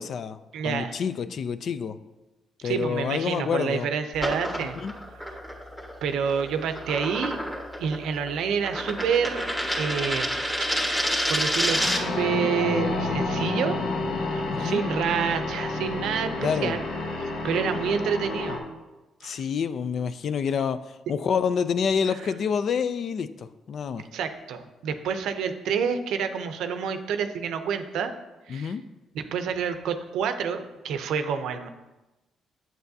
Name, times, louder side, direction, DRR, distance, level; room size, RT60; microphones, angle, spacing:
voice 1, 0.0-0.4 0.6-2.0 2.6-3.9 4.6-4.9 14.5-14.8 16.4-16.8 19.2-20.8 21.1-24.0 28.5-28.8, left 6 dB, 60° left, 13 dB, 0.4 m, -28 dB
voice 2, 0.5-0.9 2.6-4.8 5.3-5.4 6.0-7.4 7.8-9.4 9.7-10.5 10.8-13.8 14.2-16.8 17.4-18.6 19.2-19.4 24.1-28.1 28.5-28.7 29.1-31.7, right 7 dB, 80° right, 9 dB, 0.6 m, -28 dB
sound 1, 4.1-12.2, equal, 10° left, 1.4 m, -29 dB
sound 2, 11.7-18.6, left 2 dB, 75° left, 1.3 m, -29 dB
8.0 x 7.5 x 2.7 m, 1.1 s
cardioid pair, 90°, 0 cm